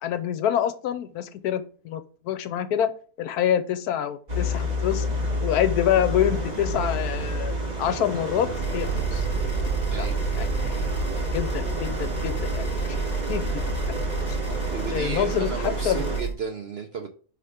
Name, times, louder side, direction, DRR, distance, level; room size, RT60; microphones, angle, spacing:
voice 1, 0.0-2.9 3.2-5.1 5.4-9.3 10.0-10.1 10.4-10.8 11.3-12.6 13.0-13.5 13.9-14.0 14.9-16.1, left 10 dB, 80° left, 11 dB, 1.1 m, -26 dB
sound 1, 4.3-16.2, left 1 dB, 30° right, 1.3 m, -30 dB
sound 2, 8.5-16.3, right 5 dB, 35° left, 1.6 m, -29 dB
voice 2, 9.9-10.2 14.5-17.1, right 5 dB, 60° right, 4 dB, 0.6 m, -34 dB
5.8 x 3.4 x 4.9 m, 0.42 s
omnidirectional pair, 1.6 m